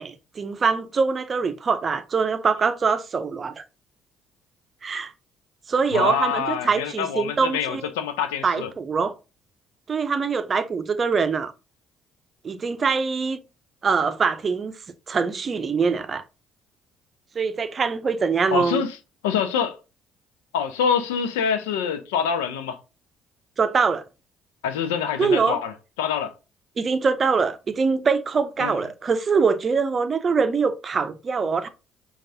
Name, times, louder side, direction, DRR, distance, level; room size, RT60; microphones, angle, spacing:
voice 1, 0.0-3.6 4.8-5.1 5.7-7.9 8.4-9.1 9.9-11.5 12.4-13.4 13.8-14.7 15.1-16.2 17.3-18.8 23.6-24.0 25.2-25.6 26.8-31.7, right 5 dB, 40° right, 0.5 m, -23 dB
voice 2, 5.9-8.7 18.5-19.0 19.2-19.8 20.5-22.8 24.6-26.3 28.6-28.8, left 7 dB, 80° left, 0.4 m, -25 dB
5.2 x 2.4 x 2.7 m
hypercardioid pair, 50°, 0 cm